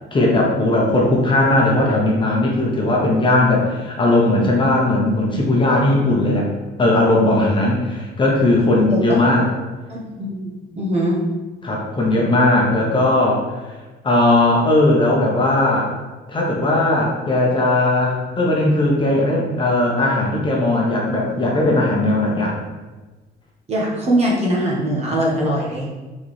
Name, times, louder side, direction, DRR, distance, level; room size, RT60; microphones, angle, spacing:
voice 1, 0.1-6.5 6.8-9.5 11.6-13.6 14.0-15.9 16.3-22.5, left 2 dB, 25° left, -2 dB, 1.1 m, -17 dB
voice 2, 9.9-10.5 10.8-11.2 23.7-25.9, right 1 dB, 35° right, -3 dB, 1.5 m, -21 dB
4.7 x 4.2 x 4.9 m, 1.2 s
cardioid pair, 150°, 19 cm